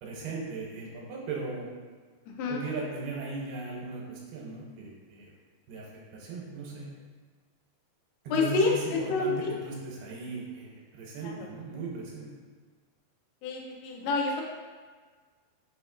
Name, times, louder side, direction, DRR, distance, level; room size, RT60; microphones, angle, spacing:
voice 1, 0.0-1.7 2.5-5.3 5.7-6.9 8.2-12.3, right 3 dB, 85° right, -3 dB, 2.6 m, -38 dB
voice 2, 2.3-2.6 8.3-9.5 11.2-11.4 13.4-14.4, left 3 dB, 90° left, -1 dB, 2.7 m, -28 dB
6.2 x 2.9 x 2.3 m, 1.5 s
omnidirectional pair, 4.5 m